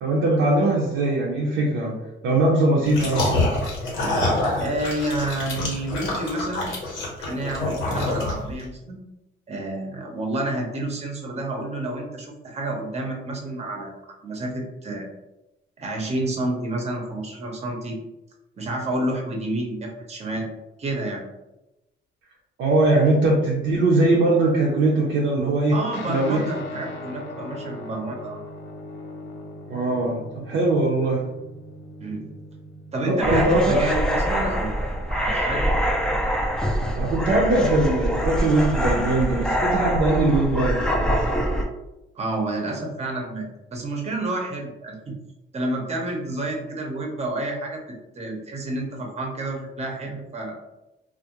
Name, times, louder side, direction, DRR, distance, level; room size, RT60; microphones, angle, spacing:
voice 1, 0.0-1.9 2.2-3.5 22.6-25.8 26.1-26.5 29.7-31.2 33.1-33.9 36.9-41.1, right 2 dB, 80° right, -3 dB, 0.6 m, -21 dB
sound 1, 2.9-8.6, left 2 dB, 80° left, 0.9 m, -26 dB
voice 2, 4.6-6.7 7.2-9.0 9.5-13.9 14.2-15.1 15.8-18.0 18.6-20.5 20.8-21.2 25.7-28.4 32.0-32.3 32.9-35.7 42.1-45.1 45.5-47.8 48.2-50.6, right 2 dB, 35° right, 1 dB, 0.6 m, -29 dB
Guitar, 25.9-35.6, left 2 dB, 65° left, 0.5 m, -40 dB
sound 2, 33.2-41.6, equal, 5° left, 0.3 m, -24 dB
2.3 x 2.0 x 2.8 m, 0.97 s
cardioid pair, 90°, 20 cm